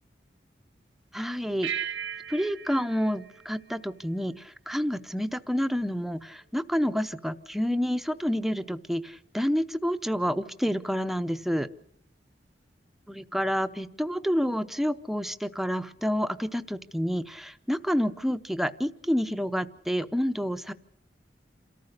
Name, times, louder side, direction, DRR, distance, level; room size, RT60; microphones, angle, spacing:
voice 1, 1.1-1.9 2.3-11.7 13.1-20.7, equal, ahead, 10 dB, 0.7 m, -29 dB
sound 1, 1.6-4.4, right 8 dB, 80° right, 1.0 m, -37 dB
28.0 x 14.0 x 6.6 m, 0.72 s
head